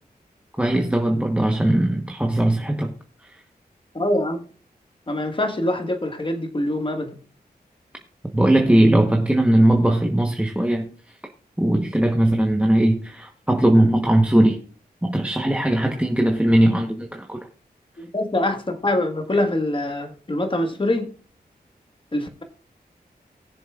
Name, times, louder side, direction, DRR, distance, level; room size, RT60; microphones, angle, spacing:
voice 1, 0.6-2.9 3.2-3.4 8.3-10.9 11.6-14.6 15.0-17.5, right 1 dB, 10° right, 1.0 m, -19 dB
voice 2, 3.9-4.4 5.1-7.2 18.0-21.1 22.1-22.4, left 1 dB, 30° left, 1.5 m, -24 dB
20.0 x 7.1 x 2.4 m
wide cardioid pair, 75°, 16 cm